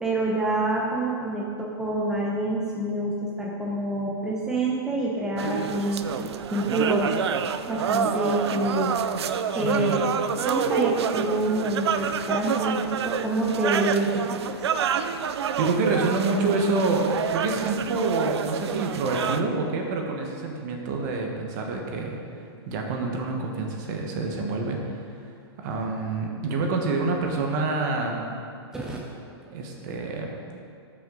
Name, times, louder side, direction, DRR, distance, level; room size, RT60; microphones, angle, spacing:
voice 1, 0.0-7.2 7.7-9.0 9.5-14.6 28.7-29.0, right 2 dB, 5° right, -4 dB, 0.8 m, -27 dB
sound 1, 5.4-19.4, right 7 dB, 80° right, 0.5 m, -28 dB
voice 2, 9.6-9.9 15.1-22.2 22.6-25.1 25.6-28.3 29.5-30.3, right 3 dB, 45° right, 1 dB, 1.5 m, -27 dB
13.5 x 6.1 x 4.0 m, 2.5 s
hypercardioid pair, 145°, 14 cm